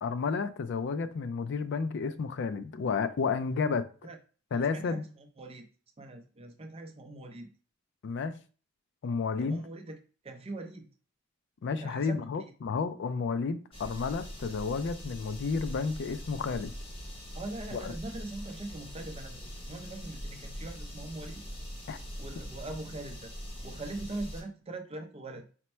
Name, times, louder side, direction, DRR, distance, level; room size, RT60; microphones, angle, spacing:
voice 1, 0.0-3.8 4.5-5.0 8.0-8.4 9.0-9.6 11.6-16.7 17.7-17.9 21.9-22.0, left 5 dB, 60° left, 0.4 m, -31 dB
voice 2, 4.5-5.7 6.0-7.5 9.4-10.0 10.2-10.9 11.8-12.5 17.3-21.4 22.2-23.3 23.6-25.5, right 2 dB, 30° right, 0.5 m, -42 dB
sound 1, 13.7-24.4, equal, 30° left, 0.8 m, -43 dB
4.3 x 2.0 x 4.3 m
head